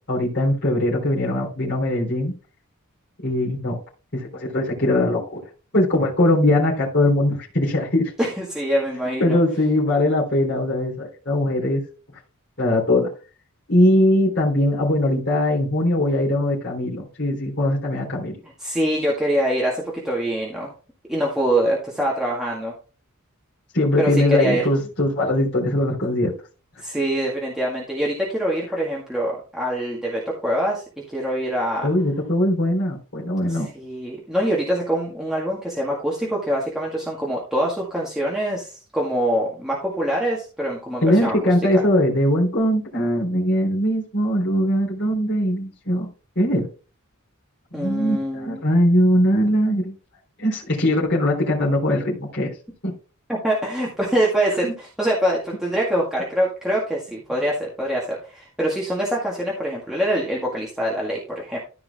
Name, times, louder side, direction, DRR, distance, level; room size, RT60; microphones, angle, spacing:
voice 1, 0.1-2.3 3.2-3.8 4.1-5.4 5.7-8.1 9.2-11.8 12.6-13.1 13.7-18.3 23.7-26.3 31.8-33.7 41.0-46.1 46.3-46.7 47.7-49.9 50.4-52.5 52.8-52.9 54.6-54.7, left 1 dB, 50° left, 3.4 m, -21 dB
voice 2, 8.2-9.4 18.6-20.7 21.1-22.7 24.0-24.6 26.8-30.8 31.1-31.9 33.5-41.4 41.7-41.8 47.7-48.6 53.3-61.6, right 1 dB, ahead, 1.9 m, -24 dB
14.0 x 4.9 x 3.5 m
head